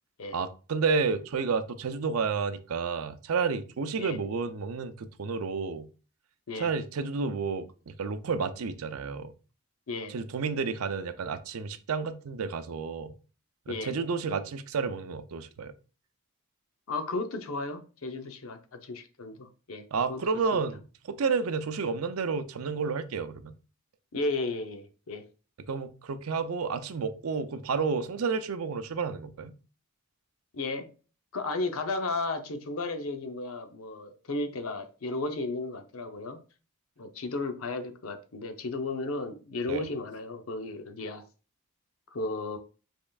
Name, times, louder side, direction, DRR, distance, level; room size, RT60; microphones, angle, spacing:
voice 1, 0.3-5.9 6.6-9.3 10.1-13.1 13.7-15.7 19.9-20.8 21.1-23.5 25.7-29.5 39.7-39.9, right 5 dB, 90° right, 0.5 m, -31 dB
voice 2, 16.9-20.2 20.5-20.6 24.1-25.2 30.5-30.9 31.3-36.4 37.0-41.2 42.1-42.6, left 3 dB, 80° left, 0.7 m, -34 dB
5.3 x 3.6 x 2.3 m
head